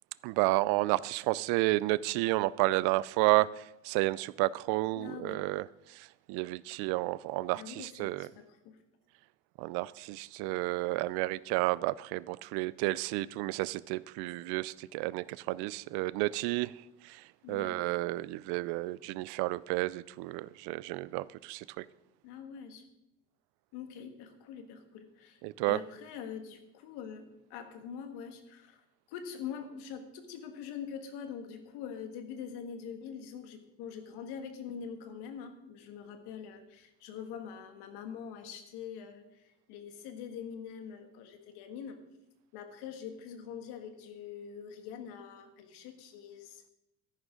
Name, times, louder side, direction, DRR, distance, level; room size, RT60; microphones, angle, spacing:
voice 1, 0.2-8.3 9.6-16.7 17.0-17.2 17.5-21.9 25.4-25.8, right 19 dB, 80° right, 0.5 m, -31 dB
voice 2, 5.0-5.5 7.5-8.8 17.4-17.8 22.2-22.9 23.7-42.0 42.5-46.6, left 7 dB, 80° left, 1.7 m, -44 dB
13.5 x 10.5 x 3.8 m
supercardioid pair, 90°, 39 cm